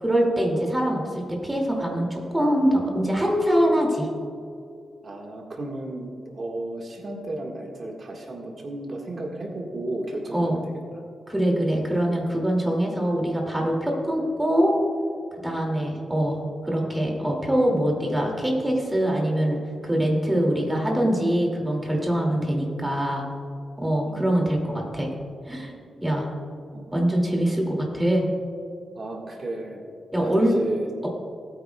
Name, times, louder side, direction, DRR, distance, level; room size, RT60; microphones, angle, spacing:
voice 1, 0.0-1.0 1.4-4.1 10.3-10.6 11.3-14.7 15.4-23.2 23.8-25.1 25.5-25.7 26.0-26.3 26.9-28.2 30.1-30.5, equal, 10° right, -1 dB, 2.4 m, -23 dB
voice 2, 5.0-11.0 22.3-22.5 24.0-24.3 26.7-26.8 29.0-29.8 30.2-30.9, right 2 dB, 50° right, 0 dB, 1.6 m, -34 dB
19.0 x 9.0 x 2.3 m, 2.4 s
wide cardioid pair, 110°, 0 cm